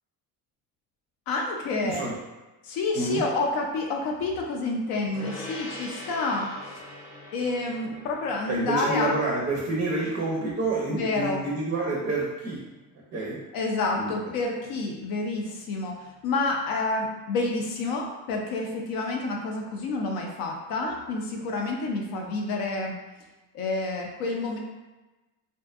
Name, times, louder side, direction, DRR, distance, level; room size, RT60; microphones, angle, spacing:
voice 1, 1.3-2.1 2.6-6.8 7.3-9.1 10.9-11.4 13.5-22.9 23.5-24.6, left 3 dB, 65° left, 0 dB, 0.5 m, -29 dB
voice 2, 1.8-2.1 2.9-3.2 8.5-12.6 13.1-13.4 13.9-14.1, right 2 dB, 30° right, -4 dB, 0.4 m, -28 dB
Gong, 5.1-14.8, left 2 dB, 85° left, 0.9 m, -45 dB
2.5 x 2.1 x 2.3 m, 1.1 s
cardioid pair, 120°, 38 cm